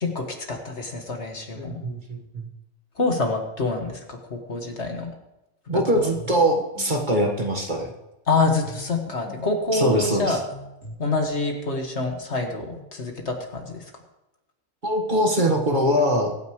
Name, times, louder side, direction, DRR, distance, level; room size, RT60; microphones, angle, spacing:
voice 1, 0.0-1.8 3.0-5.1 8.3-10.4 11.0-13.8, left 3 dB, 55° left, 2 dB, 2.0 m, -26 dB
voice 2, 1.6-2.5 5.7-7.9 9.7-10.4 14.8-16.3, equal, 35° right, 1 dB, 1.7 m, -22 dB
sound 1, 5.9-7.4 8.6-10.9, left 1 dB, 90° left, 3.3 m, -41 dB
23.5 x 9.5 x 3.2 m, 0.96 s
omnidirectional pair, 1.4 m